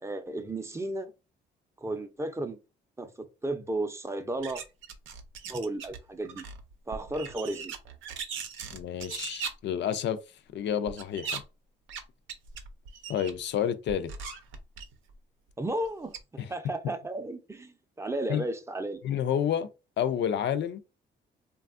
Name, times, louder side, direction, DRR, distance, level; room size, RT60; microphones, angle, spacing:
voice 1, 0.0-1.1 1.8-2.6 3.0-3.1 3.4-4.6 5.5-6.4 6.9-7.7 15.6-16.1 16.5-19.0, right 2 dB, 15° right, 0.5 m, -33 dB
sound 1, 4.4-6.0 6.2-9.5 10.9-11.4 11.9-12.0 12.3-13.3 13.9-15.1 15.8-15.9 16.1-16.2, right 6 dB, 80° right, 0.6 m, -39 dB
voice 2, 8.7-10.2 10.5-11.4 13.1-14.1 16.4-16.5 18.3-18.4 19.0-19.7 20.0-20.8, left 9 dB, 65° left, 0.4 m, -29 dB
3.3 x 2.3 x 2.4 m
cardioid pair, 90°, 20 cm